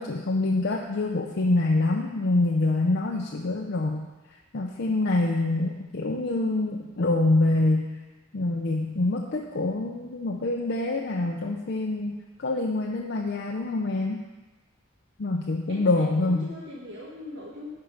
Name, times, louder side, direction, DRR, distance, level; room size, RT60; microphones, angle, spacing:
voice 1, 0.0-4.1 4.5-7.9 8.3-14.2 15.2-16.5, left 2 dB, 55° left, 0 dB, 0.6 m, -25 dB
voice 2, 15.7-17.7, left 2 dB, 60° right, -5 dB, 1.4 m, -40 dB
10.0 x 4.6 x 5.1 m, 1.2 s
head